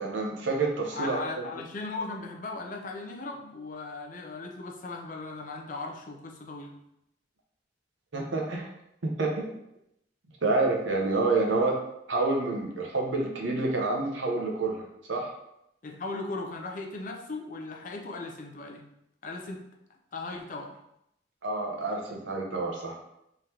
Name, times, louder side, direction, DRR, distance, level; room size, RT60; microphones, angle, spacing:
voice 1, 0.0-1.4 8.1-8.7 9.0-9.5 10.4-11.8 12.1-14.8 15.1-15.3 21.4-23.0, right 3 dB, 90° right, 0 dB, 0.9 m, -28 dB
voice 2, 0.9-6.7 15.8-18.8 19.2-19.6 19.9-20.7, left 3 dB, 45° left, 1 dB, 0.6 m, -37 dB
3.8 x 3.2 x 2.9 m, 0.80 s
head